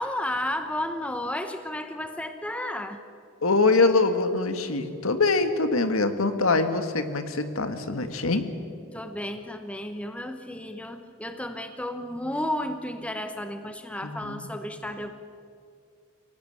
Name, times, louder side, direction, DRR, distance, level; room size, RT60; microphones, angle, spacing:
voice 1, 0.0-3.0 8.9-15.1, left 1 dB, 5° left, 7 dB, 1.0 m, -32 dB
voice 2, 3.4-8.4 14.0-14.5, left 3 dB, 80° left, 8 dB, 1.8 m, -24 dB
24.0 x 18.0 x 9.1 m, 2.4 s
head